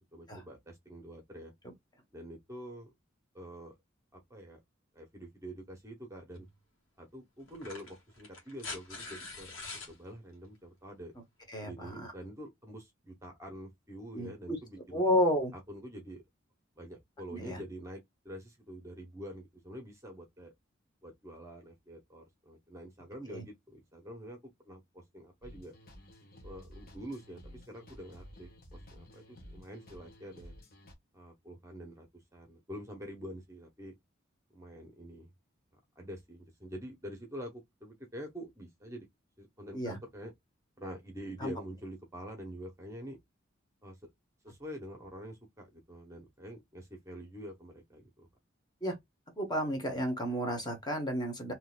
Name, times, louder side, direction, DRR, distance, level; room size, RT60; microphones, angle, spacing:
voice 1, 0.0-1.5 2.1-2.9 3.3-3.7 4.1-4.6 4.9-6.5 7.0-9.5 9.9-11.1 11.6-15.0 15.7-16.2 16.8-20.5 21.0-25.7 26.4-30.5 31.1-33.9 34.5-35.3 35.7-39.1 39.4-40.3 40.8-43.2 43.8-44.1 44.4-48.3, equal, 15° right, 0.9 m, -46 dB
sound 1, 6.3-6.5 7.5-9.9 11.4-11.5, left 3 dB, 75° left, 1.5 m, -44 dB
voice 2, 11.5-12.1 14.1-14.6 14.9-15.5 17.3-17.6 23.3-23.4 39.7-40.0 41.4-41.5 48.8-49.0 49.4-51.5, equal, 20° left, 1.1 m, -32 dB
sound 2, 25.4-30.9, equal, 50° left, 1.3 m, -53 dB
3.8 x 2.8 x 2.3 m
head